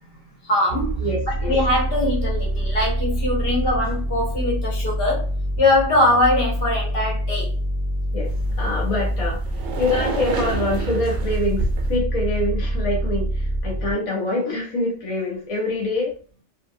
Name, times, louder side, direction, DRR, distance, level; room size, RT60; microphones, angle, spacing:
voice 1, 0.4-1.1 1.5-5.3 5.6-7.5, left 1 dB, 50° left, -3 dB, 1.1 m, -21 dB
sound 1, 0.7-13.9, right 1 dB, 30° right, 0.7 m, -25 dB
voice 2, 1.0-1.5 8.1-8.3 8.6-9.4 9.8-16.1, left 2 dB, 35° left, -3 dB, 0.7 m, -25 dB
sound 2, 8.2-12.0, right 3 dB, 65° right, 0.8 m, -30 dB
2.6 x 2.3 x 2.5 m, 0.40 s
omnidirectional pair, 1.3 m